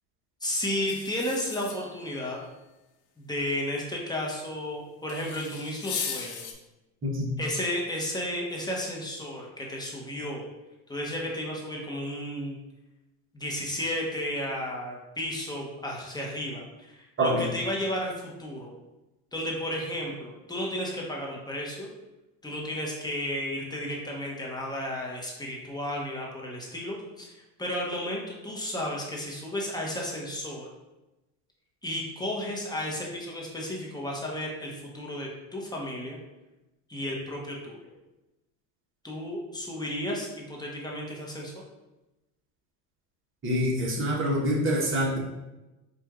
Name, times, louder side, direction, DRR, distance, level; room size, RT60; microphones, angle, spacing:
voice 1, 0.4-2.4 3.2-6.5 7.4-10.4 10.9-12.6 13.3-18.1 18.4-18.7 19.3-21.9 22.4-30.7 31.8-36.2 36.9-37.9 39.0-41.5, left 1 dB, 10° left, -2 dB, 1.1 m, -33 dB
sound 1, 0.9-2.2 5.1-6.5, left 7 dB, 75° left, 0.8 m, -37 dB
voice 2, 43.4-45.2, equal, 30° right, -3 dB, 1.3 m, -26 dB
4.5 x 2.6 x 3.6 m, 1.0 s
supercardioid pair, 95°, 44 cm